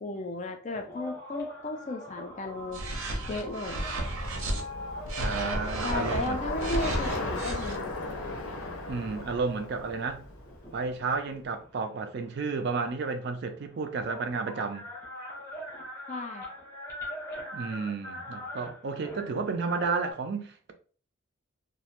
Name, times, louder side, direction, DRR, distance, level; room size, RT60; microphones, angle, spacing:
voice 1, 0.0-2.8 3.3-3.9 5.8-7.9 16.1-16.5, left 2 dB, 35° left, 0.3 m, -35 dB
sound 1, 0.7-9.5 10.2-11.9 13.1-13.2 13.3-20.1, left 1 dB, 15° left, 0.7 m, -43 dB
sound 2, 2.7-4.6 5.1-7.8, right 1 dB, 85° right, 0.7 m, -33 dB
Bicycle, 2.8-11.1, left 2 dB, 80° left, 0.6 m, -38 dB
voice 2, 5.2-6.4 8.9-10.2 10.7-14.9 17.5-20.7, right 4 dB, 50° right, 0.4 m, -32 dB
2.5 x 2.0 x 2.8 m
head